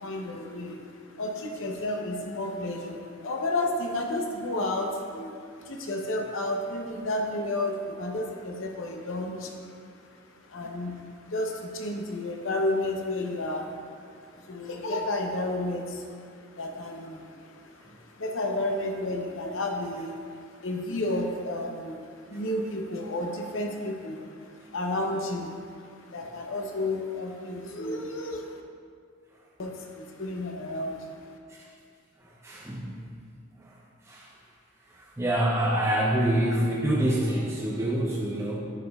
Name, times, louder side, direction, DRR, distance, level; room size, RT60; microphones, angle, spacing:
voice 1, 0.0-9.7 10.1-28.6 29.6-31.2, left 1 dB, 65° left, 2 dB, 0.7 m, -32 dB
voice 2, 32.4-33.0 34.1-34.3 35.2-38.6, right 1 dB, 15° right, -4 dB, 0.4 m, -26 dB
9.3 x 5.3 x 2.3 m, 2.3 s
head